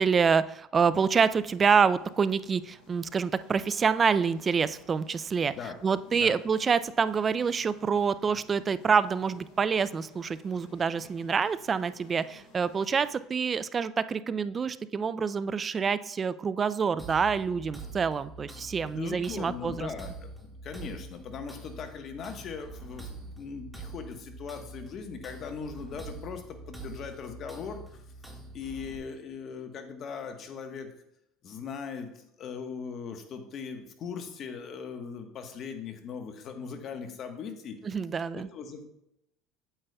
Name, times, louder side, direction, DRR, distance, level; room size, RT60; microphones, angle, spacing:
voice 1, 0.0-5.5 5.8-19.9 37.8-38.5, right 6 dB, 30° right, 16 dB, 0.3 m, -27 dB
sound 1, 1.2-13.2, left 2 dB, 70° left, 3.1 m, -57 dB
sound 2, 17.0-29.0, right 2 dB, ahead, 1.6 m, -45 dB
voice 2, 18.9-28.0 28.5-30.9 31.4-37.8 38.3-38.8, left 6 dB, 45° left, 6 dB, 1.1 m, -39 dB
8.8 x 8.0 x 2.3 m, 0.80 s
supercardioid pair, 110°, 0 cm